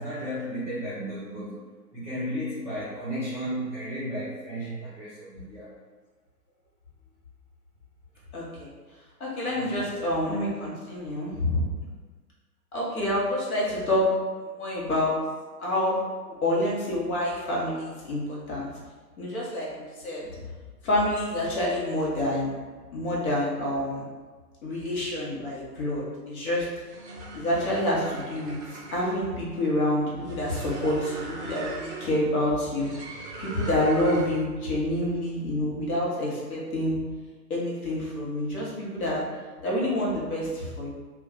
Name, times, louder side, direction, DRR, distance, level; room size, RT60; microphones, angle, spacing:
voice 1, 0.0-1.6 1.9-5.7 9.5-9.9, equal, 5° right, -12 dB, 0.8 m, -34 dB
voice 2, 9.2-11.6 12.7-14.0 14.5-15.1 15.6-16.0 16.3-18.7 19.2-20.3 20.8-22.5 22.9-24.0 24.6-26.7 27.3-37.0 37.5-39.2 39.6-40.9, left 1 dB, 55° left, -5 dB, 1.2 m, -27 dB
sound 1, 26.8-34.5, right 3 dB, 45° right, 0.5 m, -41 dB
2.4 x 2.3 x 3.7 m, 1.4 s
figure-of-eight pair, 130°, 50 cm